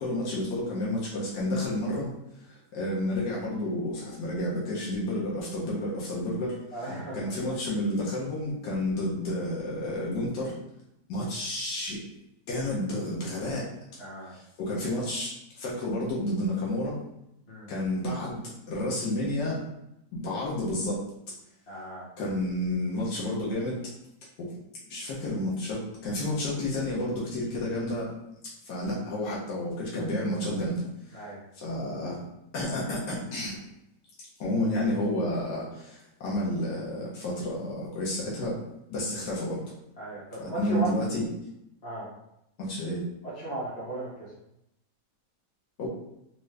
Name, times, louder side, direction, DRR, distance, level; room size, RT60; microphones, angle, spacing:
voice 1, 0.0-2.1 2.5-6.8 7.1-10.5 11.1-12.0 12.5-13.7 14.3-17.0 17.7-19.6 20.1-21.1 22.2-23.8 24.4-24.5 24.9-28.1 28.6-30.8 31.1-31.2 31.5-32.2 32.5-33.6 34.4-38.6 38.9-39.6 40.4-41.3 42.6-43.0 45.8-45.9, left 1 dB, 75° left, -6 dB, 1.5 m, -30 dB
voice 2, 6.7-7.3 14.0-14.3 17.5-17.7 21.7-22.1 31.1-31.4 40.0-40.9 41.8-42.1 43.4-44.3, right 1 dB, 25° left, -9 dB, 1.2 m, -36 dB
3.6 x 2.6 x 3.2 m, 0.83 s
omnidirectional pair, 1.8 m